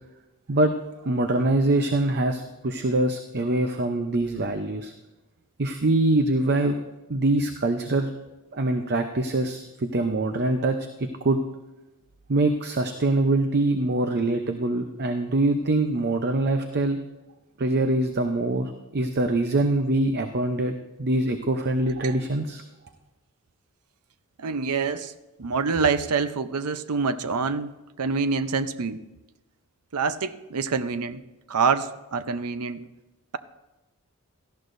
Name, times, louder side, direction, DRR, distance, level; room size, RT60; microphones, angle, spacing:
voice 1, 1.1-4.9 5.6-6.8 7.1-8.1 8.5-11.4 12.3-17.0 17.6-20.7 21.0-22.6, right 2 dB, 50° right, 6 dB, 0.7 m, -24 dB
voice 2, 24.4-25.1 25.4-29.0 29.9-31.2 31.5-32.8, right 5 dB, 90° right, 12 dB, 0.7 m, -26 dB
17.5 x 14.0 x 2.6 m, 1.1 s
head